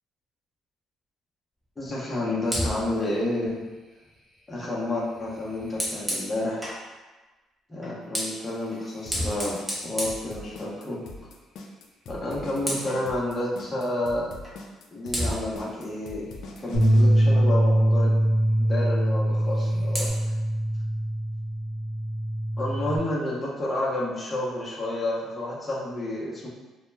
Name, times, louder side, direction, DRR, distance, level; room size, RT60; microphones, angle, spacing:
voice 1, 1.8-3.7 4.5-6.7 7.7-11.0 12.1-14.4 14.9-16.3 16.6-18.1 18.6-20.3 22.6-26.5, left 1 dB, 20° left, -5 dB, 0.7 m, -30 dB
Fire, 2.4-6.9 7.8-11.0 11.4-11.7 12.0-13.1 14.4-14.6 15.1-17.4 19.3-20.1, equal, 15° right, 0.9 m, -35 dB
sound 1, 9.1-17.0, left 3 dB, 70° left, 0.3 m, -42 dB
Bass guitar, 16.7-23.0, right 1 dB, 65° right, 0.9 m, -23 dB
2.2 x 2.1 x 3.2 m, 1.2 s
cardioid pair, 90°, 0 cm